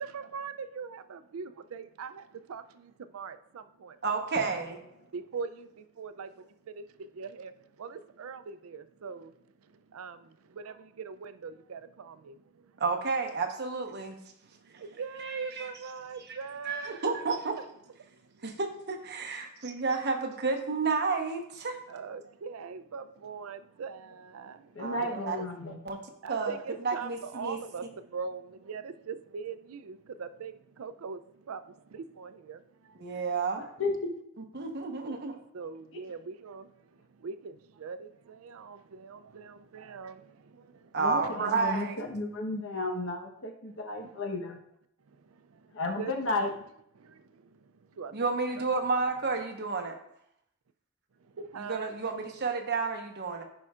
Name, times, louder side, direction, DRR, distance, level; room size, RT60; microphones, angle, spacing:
voice 1, 0.0-4.6 5.1-9.3 9.6-12.8 14.5-17.2 17.6-17.7 18.0-18.4 21.9-25.7 26.2-33.1 34.6-34.7 35.5-41.0 44.0-44.2 45.1-46.5 47.0-48.3 49.3-49.4 51.2-52.0, right 5 dB, 85° right, 0.4 m, -42 dB
voice 2, 4.0-4.8 12.8-14.2 15.2-15.7 16.6-17.6 18.4-21.8 24.8-25.4 25.8-26.0 26.3-26.6 26.8-27.6 33.0-33.6 34.5-35.4 40.9-42.0 48.1-50.0 51.6-53.4, right 4 dB, 55° right, 1.0 m, -31 dB
Drum, 4.3-6.3, equal, 40° left, 2.8 m, -49 dB
voice 3, 24.7-25.8 33.8-34.1 35.1-35.2 41.0-44.6 45.7-46.5, left 2 dB, 65° left, 1.1 m, -33 dB
14.5 x 5.4 x 2.5 m
head